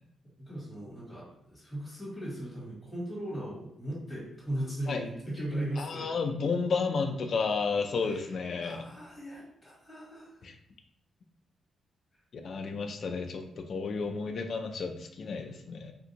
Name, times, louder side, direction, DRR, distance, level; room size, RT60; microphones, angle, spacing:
voice 1, 0.4-6.1 8.0-8.3 8.6-10.3, right 1 dB, ahead, -8 dB, 1.3 m, -38 dB
voice 2, 5.8-8.8 10.4-10.5 12.3-15.9, left 4 dB, 45° left, 5 dB, 0.3 m, -32 dB
3.3 x 2.6 x 2.8 m, 0.74 s
wide cardioid pair, 170°, 0 cm